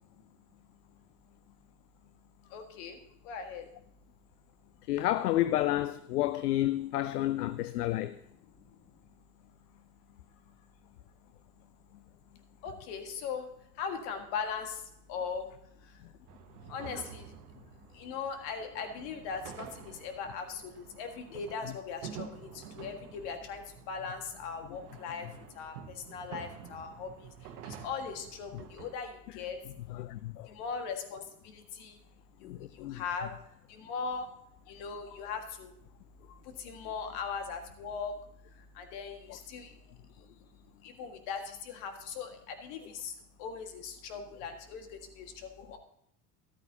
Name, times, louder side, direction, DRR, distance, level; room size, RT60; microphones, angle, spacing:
voice 1, 2.5-3.0 3.2-3.6 12.6-13.5 13.8-14.8 15.1-15.5 16.7-17.3 18.0-23.6 23.9-25.3 25.6-25.7 26.1-27.3 27.7-29.6 30.5-31.2 31.8-32.0 32.4-32.6 32.9-33.3 33.7-34.3 34.7-35.7 36.6-38.1 38.8-39.7 40.8-43.1 43.4-45.8, left 5 dB, 60° left, 1.8 m, -39 dB
voice 2, 4.9-8.2 28.5-28.6 29.9-30.5 32.4-33.0, left 14 dB, 75° left, 0.6 m, -30 dB
sound 1, 16.3-28.9, right 8 dB, 70° right, 1.2 m, -49 dB
13.0 x 12.0 x 2.8 m
figure-of-eight pair, 70°, 47 cm